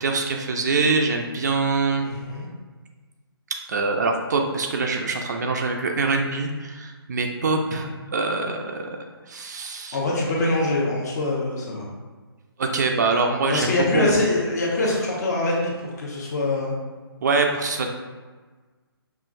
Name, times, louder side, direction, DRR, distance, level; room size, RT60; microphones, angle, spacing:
voice 1, 0.0-2.1 3.7-8.9 9.3-10.0 12.6-14.1 17.2-17.9, right 3 dB, 45° right, 3 dB, 0.4 m, -24 dB
voice 2, 2.0-2.5 9.9-11.9 13.5-16.7, left 2 dB, 40° left, -3 dB, 1.0 m, -24 dB
5.6 x 2.5 x 2.5 m, 1.4 s
figure-of-eight pair, 145°, 13 cm